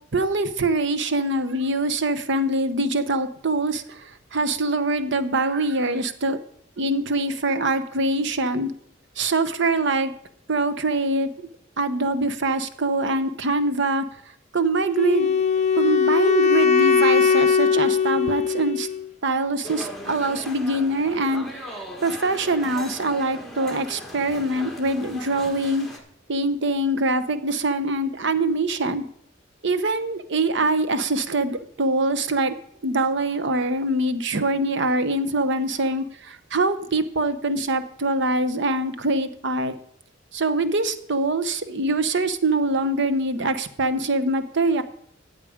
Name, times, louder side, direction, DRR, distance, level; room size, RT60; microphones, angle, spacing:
voice 1, 0.1-6.4 6.8-8.7 9.2-10.1 10.5-11.5 11.8-14.0 14.5-15.4 15.7-18.9 19.2-25.9 26.3-29.0 29.6-32.5 32.8-39.7 40.3-44.8, right 2 dB, 65° right, 12 dB, 0.9 m, -24 dB
Wind instrument woodwind instrument, 15.0-19.1, left 6 dB, 35° left, 0.5 m, -20 dB
sound 1, 19.6-26.0, left 1 dB, ahead, 1.6 m, -38 dB
13.5 x 8.2 x 5.0 m, 0.67 s
head